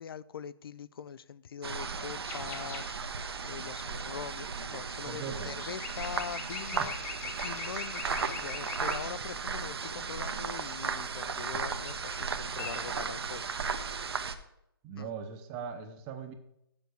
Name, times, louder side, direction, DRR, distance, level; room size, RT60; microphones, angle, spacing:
voice 1, 0.0-6.9 7.4-13.7 15.0-15.1, left 7 dB, 65° left, 17 dB, 0.4 m, -42 dB
sound 1, 1.6-14.3, right 5 dB, 80° right, 0.9 m, -36 dB
sound 2, 2.3-2.9 5.5-9.1 11.7-12.2 12.5-12.8, left 4 dB, 15° left, 0.9 m, -42 dB
voice 2, 5.1-5.5 6.7-6.9 14.8-16.3, right 6 dB, 20° right, 7 dB, 0.8 m, -40 dB
7.0 x 6.8 x 6.3 m, 0.80 s
hypercardioid pair, 160°, 13 cm